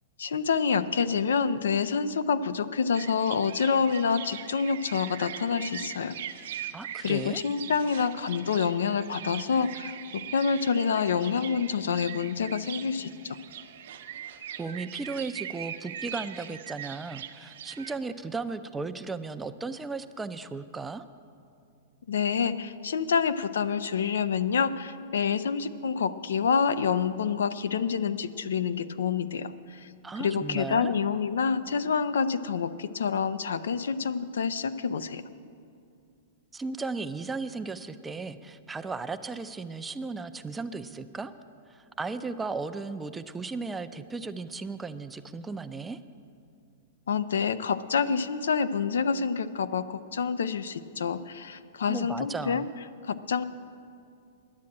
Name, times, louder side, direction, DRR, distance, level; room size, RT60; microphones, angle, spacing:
voice 1, 0.2-6.1 7.0-13.4 22.1-29.9 30.2-35.2 47.1-52.7 53.1-53.4, left 6 dB, 85° left, 13 dB, 0.5 m, -27 dB
sound 1, 2.9-17.9, right 10 dB, 70° right, 0.7 m, -41 dB
voice 2, 6.7-7.4 14.6-21.1 30.0-30.9 36.5-41.3 41.7-46.0 51.9-52.7, right 4 dB, 10° right, 10 dB, 0.5 m, -35 dB
10.5 x 7.5 x 9.8 m, 2.5 s
hypercardioid pair, 125°, 0 cm